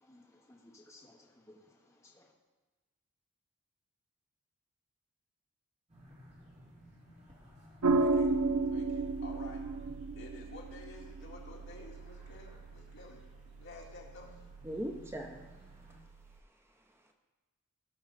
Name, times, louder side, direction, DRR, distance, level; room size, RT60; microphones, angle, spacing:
voice 1, 0.0-2.3, left 1 dB, 15° left, -1 dB, 1.0 m, -59 dB
sound 1, 5.9-16.0, equal, 30° right, 2.4 m, -59 dB
sound 2, 7.8-16.4, right 3 dB, 80° right, 0.6 m, -35 dB
voice 2, 7.9-8.3 8.7-9.6 10.1-14.4, left 2 dB, 55° left, -2 dB, 2.2 m, -51 dB
voice 3, 14.6-15.5 15.9-17.1, right 1 dB, 10° right, 4 dB, 0.6 m, -43 dB
18.0 x 6.2 x 4.0 m, 1.2 s
head